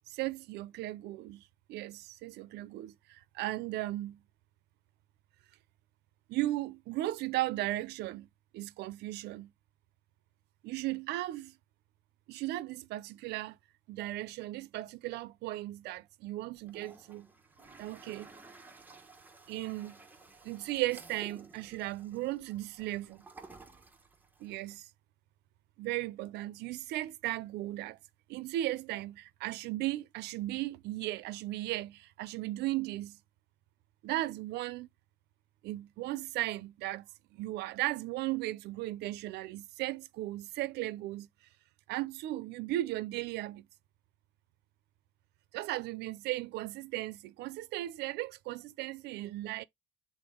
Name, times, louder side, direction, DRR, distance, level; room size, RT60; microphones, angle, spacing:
voice 1, 0.1-1.4 1.7-4.2 6.3-8.3 8.5-9.5 10.6-11.6 12.3-13.6 13.9-17.3 17.8-18.3 19.5-20.0 20.4-23.2 24.4-24.9 25.8-28.0 28.3-33.2 34.0-34.9 35.6-37.1 37.3-41.3 41.9-43.7 45.5-49.6, right 16 dB, 85° right, 0.6 m, -36 dB
Toilet flush, 16.6-24.8, right 3 dB, 10° right, 1.0 m, -55 dB
6.9 x 3.8 x 3.6 m
cardioid pair, 110°, 17 cm